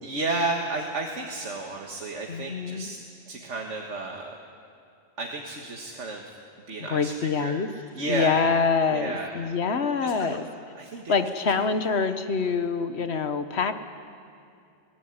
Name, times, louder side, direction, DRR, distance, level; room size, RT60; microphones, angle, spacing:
voice 1, 0.0-3.0 3.3-4.4 5.2-6.2 6.7-8.4 8.9-9.4 10.0-10.4 10.8-11.3 11.6-11.7 12.0-12.1, right 3 dB, 85° right, 1 dB, 1.9 m, -32 dB
voice 2, 2.3-2.9 6.8-7.7 8.1-10.4 11.1-13.7, left 5 dB, 65° left, 9 dB, 1.3 m, -25 dB
23.0 x 18.5 x 9.7 m, 2.6 s
omnidirectional pair, 1.2 m